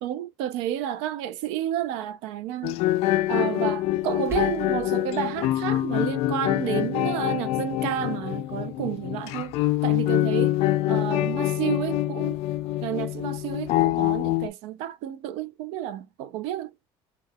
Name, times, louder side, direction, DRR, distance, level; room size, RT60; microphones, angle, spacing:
voice 1, 0.0-2.8 3.3-10.6 10.9-12.4 12.8-16.7, right 11 dB, 85° right, 0.5 m, -31 dB
sound 1, 2.6-14.5, left 15 dB, 65° left, 0.4 m, -25 dB
sound 2, 3.9-4.9, left 2 dB, 25° right, 0.9 m, -40 dB
3.3 x 2.3 x 2.2 m
cardioid pair, 125°, 11 cm